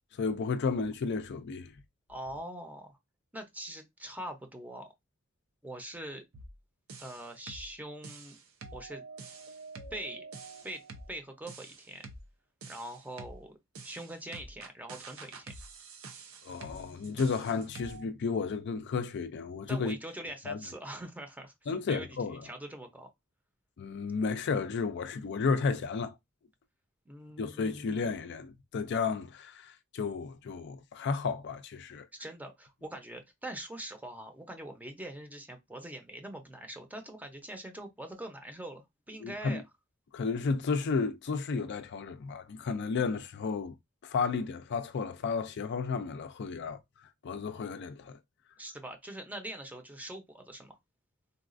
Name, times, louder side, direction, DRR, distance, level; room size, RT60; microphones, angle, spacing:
voice 1, 0.1-1.7 16.4-20.0 20.5-20.6 21.7-22.4 23.8-26.1 27.4-32.1 39.2-39.6 40.1-43.8 44.0-48.2, left 4 dB, 55° left, 0.4 m, -33 dB
voice 2, 2.1-3.0 3.3-4.9 5.6-6.2 7.0-8.4 8.7-9.0 9.9-10.2 10.6-10.8 11.1-12.1 12.7-13.6 13.8-15.5 19.7-23.1 27.1-27.9 32.1-39.6 48.6-50.8, right 1 dB, 10° right, 0.6 m, -43 dB
sound 1, 6.3-6.6 6.9-7.7 8.0-11.1 11.5-12.3 12.6-13.4 13.7-18.0, right 3 dB, 85° right, 0.7 m, -47 dB
3.9 x 2.3 x 2.4 m
head